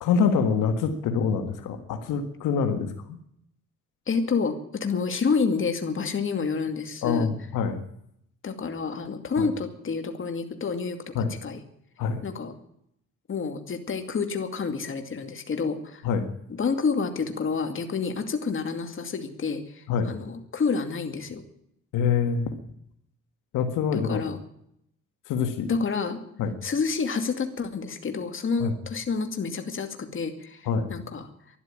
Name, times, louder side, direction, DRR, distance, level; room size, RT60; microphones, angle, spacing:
voice 1, 0.0-3.2 7.0-7.8 9.4-9.5 11.2-11.3 12.0-12.2 16.0-16.3 19.9-20.1 21.9-22.5 23.5-24.2 25.3-25.7 26.4-26.5 28.6-28.7 30.7-30.9, left 6 dB, 85° left, 7 dB, 1.7 m, -25 dB
voice 2, 4.1-7.3 8.4-11.6 12.2-12.6 13.3-16.0 16.5-21.4 23.9-24.4 25.7-26.2 26.6-31.3, left 5 dB, 40° left, 6 dB, 2.4 m, -29 dB
12.5 x 11.5 x 8.7 m, 0.74 s
cardioid pair, 90°, 30 cm